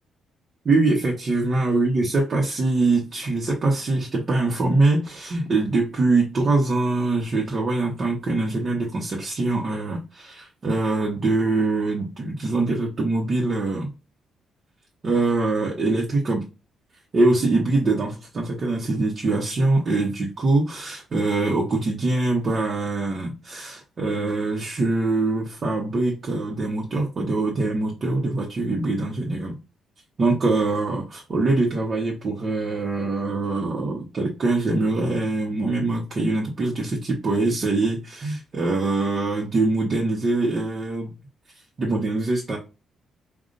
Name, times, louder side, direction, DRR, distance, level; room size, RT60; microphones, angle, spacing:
voice 1, 0.6-13.9 15.0-16.4 17.1-29.6 30.2-41.1 41.8-42.6, right 2 dB, 45° right, 1.1 m, -23 dB
5.2 x 2.6 x 2.6 m
cardioid pair, 90°, 0 cm